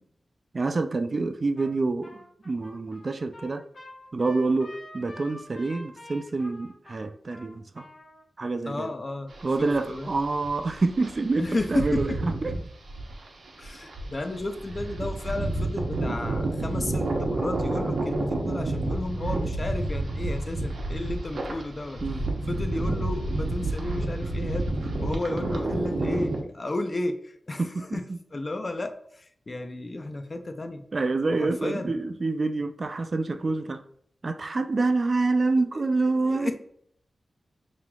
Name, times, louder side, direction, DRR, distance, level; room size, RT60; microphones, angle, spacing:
voice 1, 0.5-3.6 4.1-7.9 8.4-8.9 9.4-12.5 22.0-22.2 27.6-28.2 30.9-33.8 34.2-36.5, right 3 dB, 45° right, 0.3 m, -27 dB
Trumpet, 1.6-1.8 2.0-8.2, left 1 dB, 60° left, 1.2 m, -47 dB
voice 2, 8.7-9.3 9.6-10.1 11.4-12.2 13.6-22.0 22.5-24.7 25.0-28.0 28.3-30.8 31.3-32.0 36.2-36.5, left 2 dB, 35° left, 0.5 m, -33 dB
sound 1, 9.3-26.4, right 2 dB, 90° right, 0.8 m, -30 dB
5.6 x 3.1 x 2.3 m
wide cardioid pair, 105°, 0 cm